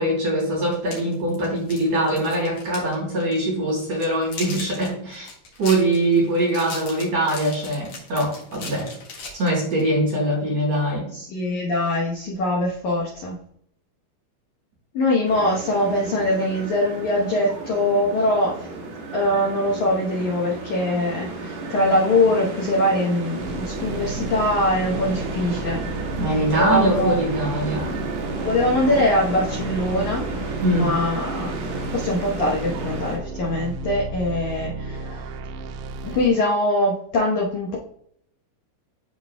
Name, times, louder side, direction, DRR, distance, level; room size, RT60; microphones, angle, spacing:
voice 1, 0.0-5.3 5.6-8.9 9.3-11.1 26.2-28.0 30.6-30.9, right 1 dB, 40° right, -5 dB, 3.7 m, -22 dB
sound 1, 0.7-2.9 3.2-3.4 3.8-9.9, left 3 dB, 50° left, 2.3 m, -37 dB
voice 2, 11.1-13.4 14.9-18.7 19.1-25.8 26.6-27.2 28.4-30.3 30.8-31.5 31.9-35.3 36.0-37.8, left 1 dB, 80° left, -3 dB, 1.7 m, -22 dB
sound 2, 15.3-33.2, right 2 dB, 60° right, 3.3 m, -32 dB
sound 3, 23.4-36.3, right 3 dB, 90° right, 2.3 m, -34 dB
12.5 x 4.4 x 2.3 m, 0.68 s
omnidirectional pair, 5.2 m